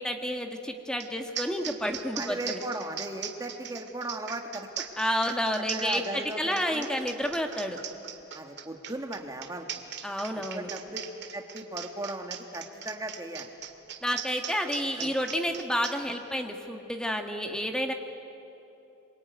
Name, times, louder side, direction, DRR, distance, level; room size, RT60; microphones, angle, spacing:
voice 1, 0.0-2.6 5.0-7.8 10.0-10.7 14.0-17.9, equal, 5° left, 4 dB, 1.7 m, -30 dB
sound 1, 1.0-1.1 1.3-15.9, right 9 dB, 60° right, 1.9 m, -39 dB
voice 2, 2.2-4.8 5.3-6.9 8.3-10.0 10.5-11.0 11.3-13.5 15.0-15.1, right 1 dB, 20° right, 4 dB, 1.7 m, -37 dB
26.0 x 22.5 x 9.3 m, 2.9 s
head